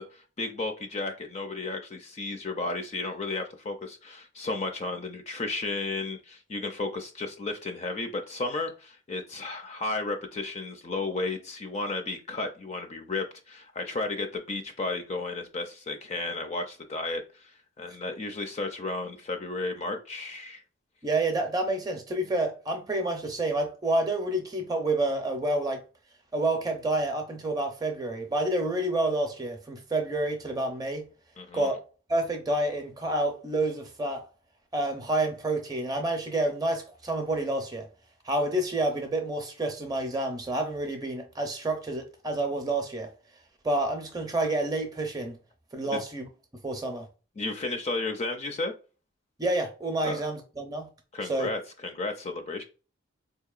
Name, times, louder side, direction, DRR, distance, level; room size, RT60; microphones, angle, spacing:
voice 1, 0.0-20.6 31.4-31.8 45.9-46.0 47.4-48.7 50.0-50.2 51.1-52.6, left 3 dB, 35° left, 0.4 m, -33 dB
voice 2, 21.0-25.8 26.3-31.1 31.5-31.8 32.1-34.2 34.7-37.9 38.2-43.1 43.6-45.4 45.7-46.2 46.6-47.1 49.4-50.9 51.3-51.5, right 2 dB, 20° right, 0.6 m, -29 dB
4.1 x 2.8 x 2.4 m
head